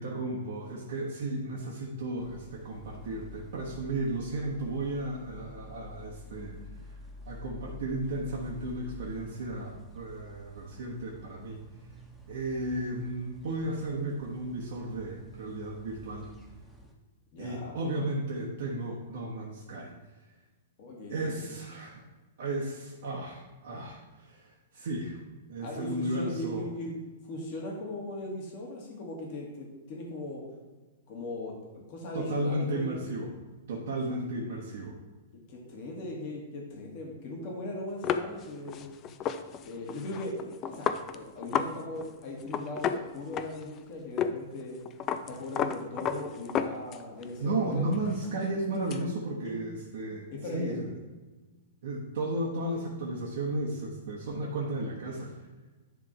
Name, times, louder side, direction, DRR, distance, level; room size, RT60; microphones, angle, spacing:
voice 1, 0.0-6.5 7.3-11.6 12.3-16.3 17.4-19.9 21.1-22.0 22.4-24.5 24.7-25.2 25.5-26.7 32.1-33.3 33.7-35.0 47.4-50.3 50.5-50.9 51.8-55.3, right 2 dB, 60° right, -3 dB, 1.2 m, -34 dB
sound 1, 2.2-16.9, left 2 dB, 5° left, 1.2 m, -49 dB
voice 2, 17.3-17.8 20.8-21.4 25.6-26.9 27.2-30.4 31.1-33.0 33.8-34.0 35.3-38.9 39.6-44.8 45.3-47.9 49.4-49.5 50.3-50.9, left 1 dB, 45° left, -1 dB, 2.0 m, -39 dB
sound 2, 38.0-41.7 42.0-42.1 42.4-43.8 44.2-44.3 44.6-47.2 47.6-49.0, left 8 dB, 30° left, 0.5 m, -32 dB
10.5 x 3.7 x 4.5 m, 1.3 s
figure-of-eight pair, 105°, 0 cm